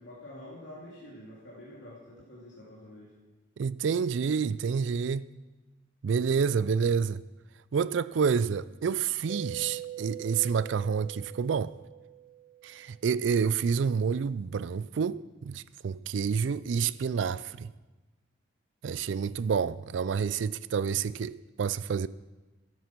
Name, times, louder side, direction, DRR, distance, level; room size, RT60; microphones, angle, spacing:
voice 1, 0.0-3.1, left 1 dB, 85° left, 3.0 m, -47 dB
voice 2, 3.6-5.2 6.0-7.2 7.7-11.7 12.6-17.7 18.8-22.1, right 6 dB, 85° right, 0.4 m, -28 dB
Mallet percussion, 9.3-13.1, right 9 dB, 50° right, 0.8 m, -43 dB
12.5 x 10.5 x 6.0 m
head